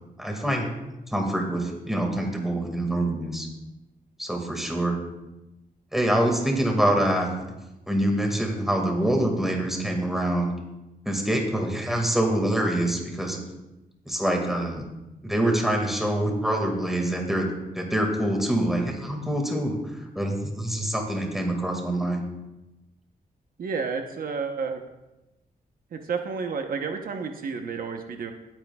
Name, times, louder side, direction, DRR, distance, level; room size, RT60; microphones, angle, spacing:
voice 1, 0.2-0.7 1.1-3.5 4.2-5.0 5.9-7.4 7.9-10.6 11.1-13.4 14.1-14.8 15.2-22.2, right 1 dB, ahead, 1 dB, 1.9 m, -25 dB
voice 2, 23.6-24.8 25.9-28.3, right 5 dB, 70° right, 5 dB, 0.9 m, -31 dB
18.0 x 9.0 x 2.3 m, 0.99 s
wide cardioid pair, 145°, 15 cm